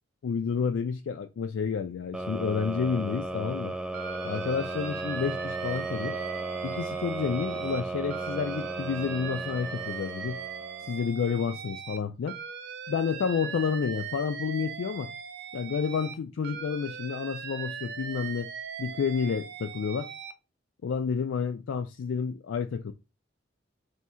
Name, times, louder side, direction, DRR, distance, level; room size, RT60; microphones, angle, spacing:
voice 1, 0.2-3.7 4.2-6.2 6.6-10.4 10.9-12.4 12.9-15.1 15.5-18.5 18.8-20.1 20.8-22.9, left 6 dB, 75° left, 0.3 m, -30 dB
sound 1, 2.1-11.1, right 2 dB, 5° right, 0.3 m, -35 dB
Alarm, 3.9-7.8 8.1-12.0 12.3-16.1 16.4-20.3, right 8 dB, 60° right, 0.5 m, -40 dB
3.6 x 2.7 x 4.2 m
head